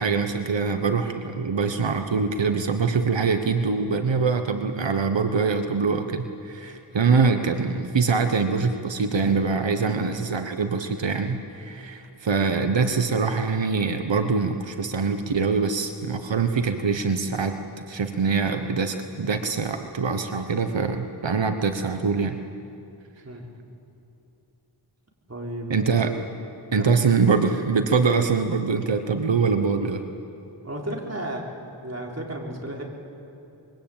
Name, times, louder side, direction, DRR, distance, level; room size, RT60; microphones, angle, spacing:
voice 1, 0.0-17.6 17.9-22.4 25.7-26.2 26.7-30.0, right 5 dB, 90° right, 7 dB, 1.2 m, -24 dB
voice 2, 25.3-25.9 26.8-27.0 30.6-31.4 31.8-32.8, right 1 dB, 35° right, -1 dB, 4.4 m, -33 dB
25.0 x 22.5 x 8.9 m, 2.8 s
wide cardioid pair, 60°, 43 cm